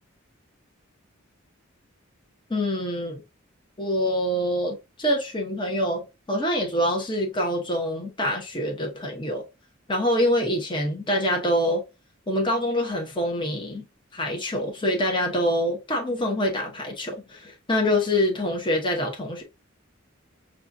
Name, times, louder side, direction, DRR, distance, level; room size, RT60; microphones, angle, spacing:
voice 1, 2.5-3.2 3.8-6.0 6.3-9.4 9.9-11.8 12.3-13.8 14.1-19.4, left 1 dB, 25° left, 1.0 m, -25 dB
6.5 x 2.4 x 2.6 m
head